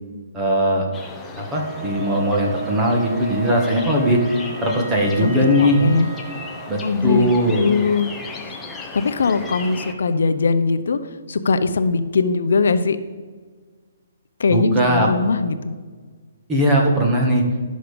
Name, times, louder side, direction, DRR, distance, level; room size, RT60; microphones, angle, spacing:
voice 1, 0.3-0.9 1.4-4.2 4.6-5.9 6.7-7.7 14.5-15.1 16.5-17.4, equal, 15° right, 0 dB, 1.8 m, -19 dB
sound 1, 0.9-9.9, left 4 dB, 10° left, 1.0 m, -36 dB
Wind instrument woodwind instrument, 1.5-6.8, right 5 dB, 45° right, 1.2 m, -33 dB
voice 2, 5.6-6.1 6.8-7.3 7.5-8.1 8.9-11.0 11.3-13.0 14.4-15.8, left 4 dB, 75° left, 10 dB, 0.7 m, -20 dB
12.0 x 6.5 x 5.2 m, 1.5 s
hypercardioid pair, 155°, 0 cm